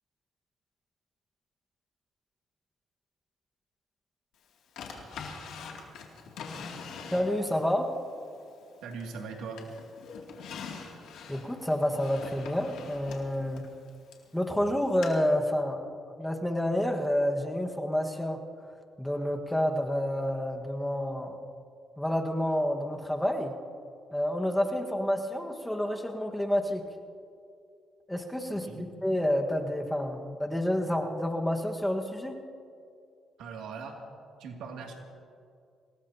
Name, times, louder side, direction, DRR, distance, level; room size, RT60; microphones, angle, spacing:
Drawer open or close, 4.8-7.7 8.2-9.2 9.6-14.3 15.0-15.1, left 5 dB, 85° left, 2.7 m, -43 dB
voice 1, 7.1-7.9 11.3-13.6 14.3-18.4 19.0-21.4 22.0-23.5 24.1-26.8 28.1-28.7 29.0-32.3, left 1 dB, 5° left, 2 dB, 1.6 m, -29 dB
voice 2, 8.8-9.6 28.5-28.8 33.4-34.0 34.4-34.9, right 5 dB, 85° right, 1 dB, 2.6 m, -40 dB
26.0 x 19.0 x 2.9 m, 2.4 s
cardioid pair, 90°, 0 cm